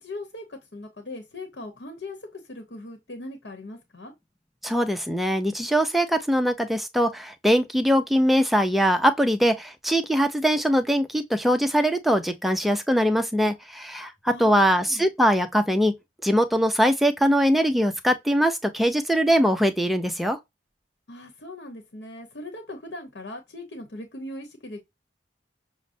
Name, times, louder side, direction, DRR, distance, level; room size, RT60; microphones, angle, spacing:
voice 1, 0.0-4.1 14.2-15.1 21.1-24.8, left 2 dB, 75° left, 1.0 m, -39 dB
voice 2, 4.6-15.9 16.2-20.4, equal, ahead, 0.5 m, -22 dB
6.2 x 2.1 x 2.6 m
head